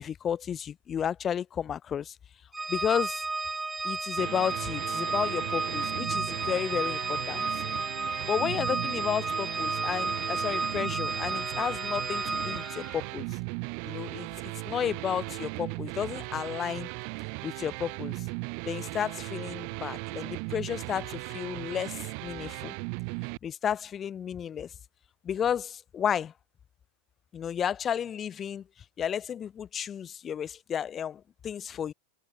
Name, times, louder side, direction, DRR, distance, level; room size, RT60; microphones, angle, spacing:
voice 1, 0.0-2.2 2.7-3.2 3.8-7.5 8.3-13.3 13.8-16.9 17.4-18.3 18.7-22.7 23.4-24.7 25.2-26.3 27.3-28.6 29.0-31.9, left 8 dB, 25° left, 0.6 m, -32 dB
Organ, 2.5-12.9, right 3 dB, 10° right, 1.9 m, -32 dB
sound 1, 4.2-23.4, right 40 dB or more, 45° right, 0.8 m, -37 dB
Wind instrument woodwind instrument, 9.7-13.1, left 2 dB, 5° left, 4.7 m, -50 dB
figure-of-eight pair, 90°, 0 cm